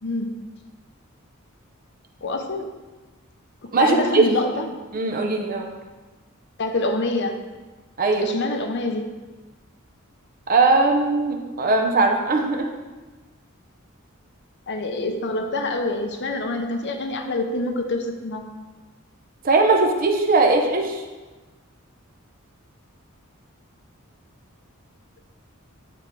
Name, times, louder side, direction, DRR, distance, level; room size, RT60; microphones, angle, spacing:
voice 1, 0.0-0.4 2.2-2.7 3.8-4.7 6.6-7.4 8.2-9.1 14.7-18.5, left 2 dB, 55° left, 5 dB, 0.7 m, -26 dB
voice 2, 3.7-4.3 4.9-5.7 8.0-8.4 10.5-12.7 19.4-21.0, right 3 dB, 40° right, 3 dB, 0.8 m, -19 dB
8.9 x 3.7 x 4.6 m, 1.2 s
head